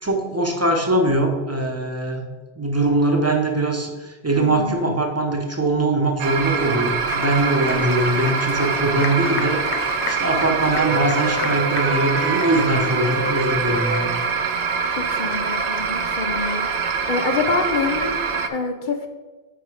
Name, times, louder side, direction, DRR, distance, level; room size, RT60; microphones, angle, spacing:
voice 1, 0.0-2.3 2.6-14.1, right 2 dB, 15° right, 1 dB, 0.8 m, -22 dB
voice 2, 4.4-4.9 14.9-18.2 18.5-19.1, left 4 dB, 60° left, 6 dB, 0.6 m, -26 dB
sound 1, 6.2-18.5, right 5 dB, 55° right, 0.5 m, -24 dB
Applause, 6.5-14.3, left 5 dB, 80° left, 1.0 m, -33 dB
Wind instrument woodwind instrument, 10.7-14.1, right 2 dB, 90° right, 0.9 m, -29 dB
5.1 x 4.8 x 4.9 m, 1.3 s
omnidirectional pair, 1.1 m